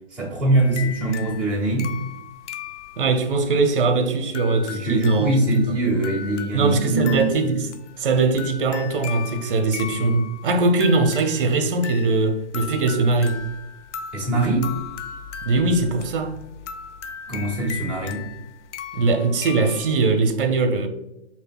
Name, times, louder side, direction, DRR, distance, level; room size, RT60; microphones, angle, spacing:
voice 1, 0.1-1.9 4.7-7.3 14.1-14.7 17.3-18.3, right 2 dB, 5° right, 0.6 m, -22 dB
sound 1, 0.5-20.0, left 8 dB, 90° left, 0.5 m, -38 dB
voice 2, 3.0-5.3 5.7-5.8 6.5-7.7 8.0-13.4 15.4-16.4 18.9-20.9, right 3 dB, 50° right, 0.7 m, -21 dB
4.9 x 2.8 x 2.2 m
hypercardioid pair, 150°, 35 cm